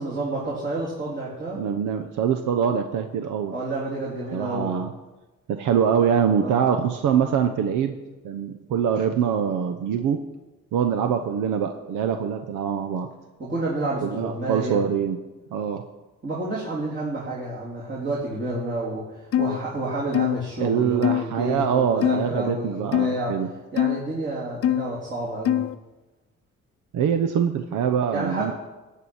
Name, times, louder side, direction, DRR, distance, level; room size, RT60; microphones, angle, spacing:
voice 1, 0.0-1.6 3.5-4.7 6.4-6.6 13.4-14.8 16.2-23.4 23.7-25.6 28.1-28.5, right 2 dB, 40° right, -6 dB, 3.4 m, -29 dB
voice 2, 1.6-3.5 4.3-4.9 5.5-8.0 8.2-10.2 10.7-13.1 14.0-15.2 15.5-15.8 20.6-23.5 26.9-28.5, right 8 dB, 80° right, 7 dB, 0.9 m, -24 dB
sound 1, 19.3-19.6 20.1-20.4 21.0-21.2 22.0-22.3 22.9-23.2 23.8-24.0 24.6-24.9 25.4-25.7, left 11 dB, 50° left, 0.6 m, -22 dB
13.5 x 4.7 x 8.7 m, 1.1 s
cardioid pair, 90°, 30 cm